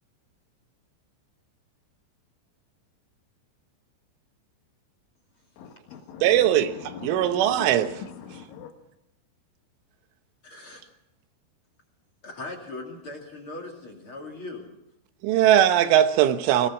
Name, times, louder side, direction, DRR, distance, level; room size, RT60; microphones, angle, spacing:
voice 1, 5.6-8.7, left 7 dB, 80° left, 3.9 m, -41 dB
voice 2, 6.2-8.0 15.2-16.7, right 11 dB, 90° right, 3.6 m, -20 dB
voice 3, 10.4-10.8 12.2-14.7, left 2 dB, 35° left, 2.7 m, -39 dB
22.5 x 18.5 x 6.3 m
omnidirectional pair, 5.4 m